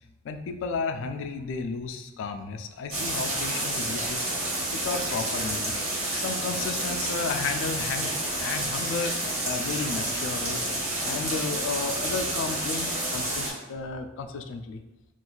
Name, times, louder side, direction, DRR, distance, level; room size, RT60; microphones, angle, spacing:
voice 1, 0.2-4.4 4.7-5.8 6.1-9.2 9.4-10.6 11.0-14.8, left 4 dB, 65° left, 7 dB, 0.3 m, -33 dB
sound 1, 2.9-13.5, right 1 dB, 85° right, 1.0 m, -29 dB
2.5 x 2.3 x 3.7 m, 0.99 s
head